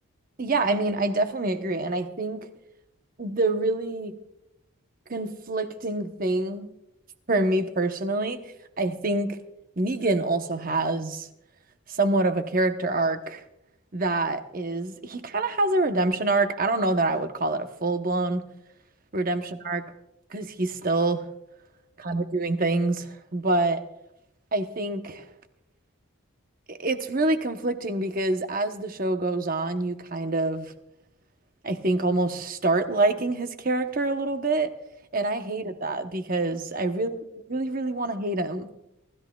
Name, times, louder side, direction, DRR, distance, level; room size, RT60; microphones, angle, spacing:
voice 1, 0.4-2.5 3.2-4.1 5.1-6.7 7.3-8.4 8.8-9.4 9.8-11.3 11.9-13.4 13.9-18.4 19.1-19.8 20.3-21.2 22.0-23.8 24.5-25.3 26.7-30.7 31.6-34.7 35.1-38.7, right 2 dB, 40° right, 8 dB, 0.9 m, -26 dB
28.5 x 13.5 x 2.3 m, 0.85 s
head